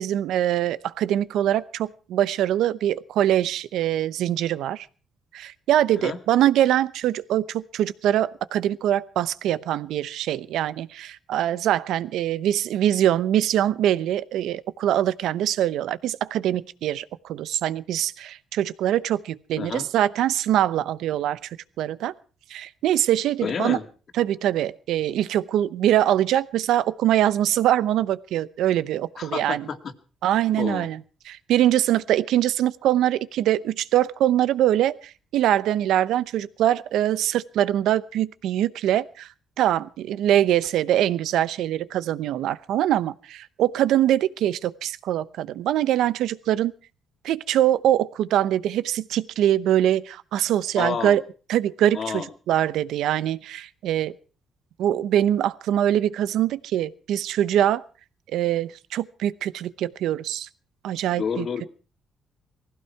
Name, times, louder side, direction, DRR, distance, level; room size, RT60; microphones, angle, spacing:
voice 1, 0.0-4.9 5.3-21.5 21.8-22.1 22.5-23.8 24.2-29.6 30.2-31.0 31.3-39.3 39.6-46.7 47.2-51.2 51.5-54.1 54.8-57.8 58.3-60.5 60.8-61.5, right 12 dB, 85° right, 16 dB, 0.8 m, -23 dB
voice 2, 19.6-19.9 23.4-23.9 29.2-29.8 30.6-30.9 50.8-51.2 51.9-52.3 61.1-61.7, left 6 dB, 55° left, 7 dB, 2.3 m, -29 dB
20.0 x 15.5 x 4.6 m, 0.38 s
cardioid pair, 90°, 0 cm